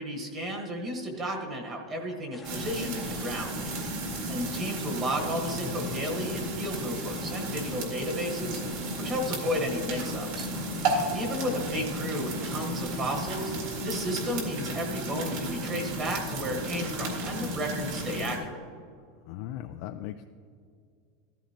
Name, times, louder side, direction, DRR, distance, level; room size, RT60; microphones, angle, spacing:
voice 1, 0.0-3.5 4.3-8.6 9.0-10.5 11.1-13.5 13.8-18.6, equal, 25° right, 2 dB, 1.3 m, -33 dB
sound 1, 2.3-13.6, left 2 dB, 5° left, 0.7 m, -49 dB
sound 2, 2.4-18.4, right 1 dB, 55° right, 2.0 m, -33 dB
voice 2, 4.0-4.4 11.4-11.6 19.2-20.2, left 12 dB, 50° left, 7 dB, 0.3 m, -40 dB
14.0 x 13.0 x 2.9 m, 2.2 s
supercardioid pair, 175°, 0 cm